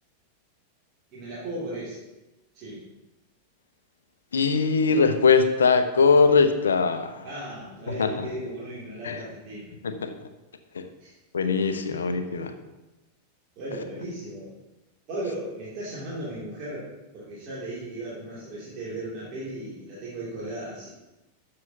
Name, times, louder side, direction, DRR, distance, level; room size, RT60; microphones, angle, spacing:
voice 1, 1.1-2.0 2.5-2.8 7.2-9.7 11.0-11.1 11.8-12.0 12.3-12.5 13.6-14.5 15.1-20.9, right 1 dB, 40° right, -8 dB, 2.8 m, -36 dB
voice 2, 4.3-7.2 8.0-8.3 9.0-9.2 9.8-10.1 10.7-10.9 11.3-12.5, left 5 dB, 70° left, 9 dB, 0.7 m, -21 dB
12.0 x 6.7 x 2.9 m, 1.0 s
figure-of-eight pair, 90°, 0 cm